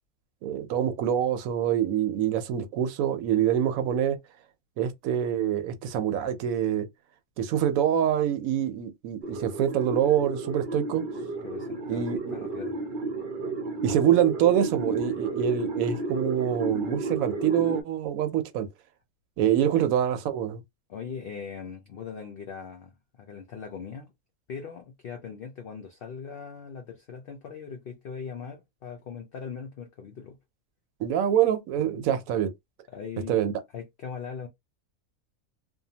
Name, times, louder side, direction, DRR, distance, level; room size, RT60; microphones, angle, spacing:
voice 1, 0.4-4.2 4.8-6.9 7.4-11.0 11.9-12.4 13.8-18.7 19.4-20.6 31.0-32.5 33.3-33.5, right 10 dB, 75° right, 1.0 m, -25 dB
sound 1, 9.2-17.8, right 3 dB, 50° right, 0.6 m, -33 dB
voice 2, 11.4-12.1 12.3-12.8 19.6-19.9 20.9-22.9 23.2-24.1 24.5-30.4 31.8-32.0 32.9-33.4 33.7-34.5, left 6 dB, 75° left, 0.5 m, -40 dB
2.7 x 2.2 x 2.7 m
omnidirectional pair, 1.5 m